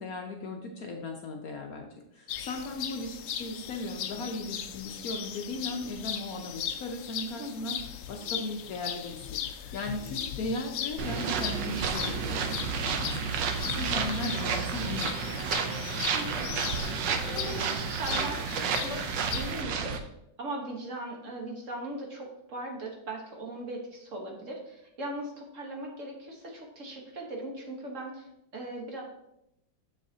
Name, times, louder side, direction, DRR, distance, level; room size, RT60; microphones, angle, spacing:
voice 1, 0.0-7.8 8.1-13.3 13.6-15.4, left 2 dB, 65° left, 3 dB, 1.0 m, -37 dB
sound 1, 2.3-19.6, left 9 dB, 85° left, 0.7 m, -38 dB
voice 2, 7.4-7.7 16.1-16.5 17.1-20.0 20.4-28.3 28.5-29.0, right 1 dB, 45° right, 0 dB, 1.4 m, -39 dB
sound 2, 11.0-20.0, right 6 dB, 80° right, 1.4 m, -31 dB
7.4 x 6.9 x 2.8 m, 0.81 s
omnidirectional pair, 2.0 m